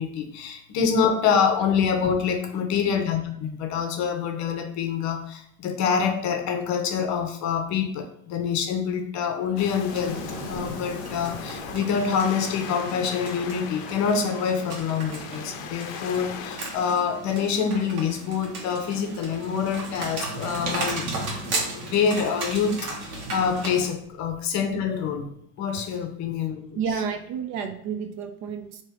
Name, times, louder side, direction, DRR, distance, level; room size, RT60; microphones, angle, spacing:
voice 1, 0.0-10.2 10.5-21.1 21.7-25.3 25.6-27.0, left 6 dB, 45° left, 4 dB, 0.8 m, -26 dB
Waves surf, 9.6-16.9, left 8 dB, 65° left, 0.6 m, -39 dB
sound 1, 9.9-23.9, right 2 dB, 90° right, 1.5 m, -35 dB
voice 2, 26.7-28.8, right 6 dB, 45° right, 7 dB, 0.6 m, -31 dB
3.2 x 2.9 x 4.5 m, 0.72 s
supercardioid pair, 120°, 41 cm